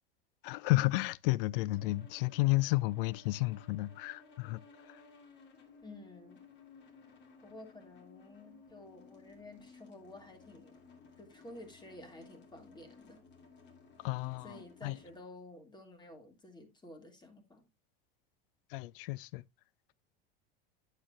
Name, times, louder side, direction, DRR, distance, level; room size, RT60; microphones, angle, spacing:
voice 1, 0.4-4.6 4.9-5.0 14.0-15.0 18.7-19.4, left 20 dB, 70° left, 0.5 m, -32 dB
sound 1, 1.7-15.2, left 4 dB, 40° left, 2.4 m, -58 dB
voice 2, 5.8-6.4 7.4-10.7 11.2-13.2 14.4-17.7, left 1 dB, 15° left, 2.1 m, -52 dB
8.6 x 7.6 x 2.4 m
hypercardioid pair, 95°, 29 cm